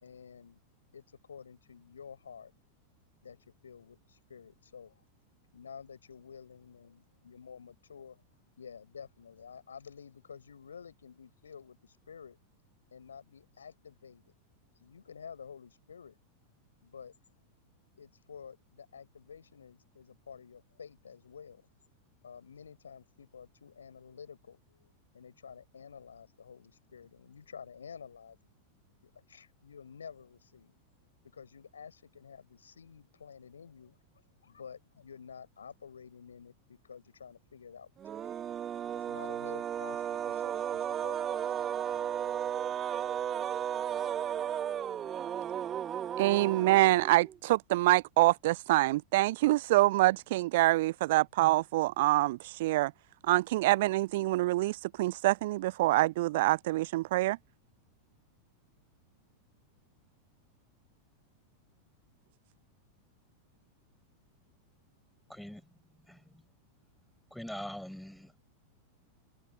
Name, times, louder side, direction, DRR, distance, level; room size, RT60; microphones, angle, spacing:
voice 1, 0.0-0.6 0.9-2.5 3.2-5.0 5.5-8.2 8.6-12.4 12.9-14.3 14.8-16.2 16.8-17.1 18.0-21.7 22.2-28.4 29.0-30.7 31.3-34.0 34.4-38.3 38.9-41.5, left 6 dB, 70° left, 5.1 m, -50 dB
sound 1, 38.0-47.4, right 9 dB, 25° right, 1.7 m, -34 dB
voice 2, 46.2-52.9 53.3-57.4, right 18 dB, 50° right, 0.5 m, -26 dB
voice 3, 65.3-65.7 66.1-66.2 67.3-68.4, equal, ahead, 5.8 m, -43 dB
figure-of-eight pair, 90°, 0 cm